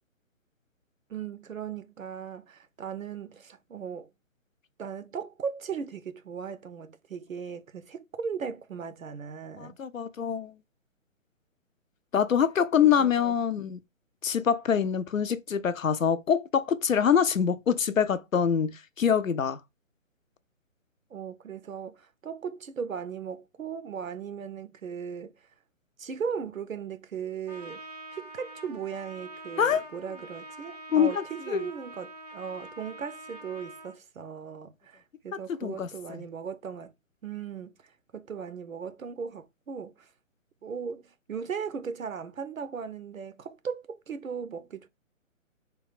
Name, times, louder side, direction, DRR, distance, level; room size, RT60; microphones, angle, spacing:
voice 1, 1.1-4.1 4.8-9.8 12.8-13.3 21.1-25.5 26.0-27.8 28.1-36.9 37.2-40.1 40.6-44.9, right 6 dB, 80° right, 0.6 m, -37 dB
voice 2, 9.6-10.5 12.1-13.8 14.2-19.6 29.6-29.9 30.9-31.2 31.5-31.6 35.6-36.2, left 7 dB, 75° left, 0.6 m, -25 dB
Trumpet, 27.5-34.0, right 2 dB, 30° right, 0.4 m, -45 dB
3.4 x 2.3 x 4.0 m
figure-of-eight pair, 140°, 40 cm